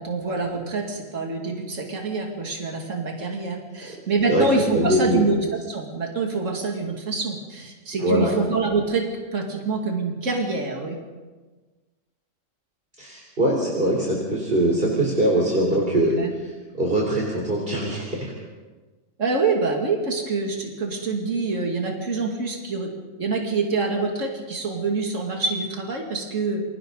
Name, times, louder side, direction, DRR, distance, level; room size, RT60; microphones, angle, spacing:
voice 1, 0.0-9.1 9.3-11.0 16.2-16.3 19.2-22.9 23.2-26.6, right 3 dB, 70° right, 0 dB, 2.9 m, -26 dB
voice 2, 4.7-5.3 8.0-8.3 13.0-18.3, right 1 dB, 45° right, -3 dB, 3.8 m, -22 dB
29.0 x 23.5 x 4.0 m, 1.3 s
omnidirectional pair, 1.3 m